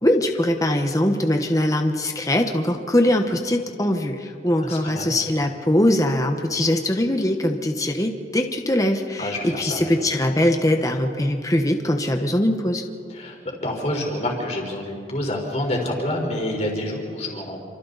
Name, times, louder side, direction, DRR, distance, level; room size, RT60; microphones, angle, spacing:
voice 1, 0.0-12.8, left 1 dB, 20° left, 4 dB, 1.2 m, -21 dB
voice 2, 4.5-5.1 9.2-9.9 13.1-17.6, left 1 dB, 35° left, 0 dB, 4.3 m, -28 dB
29.0 x 25.5 x 4.1 m, 2.3 s
head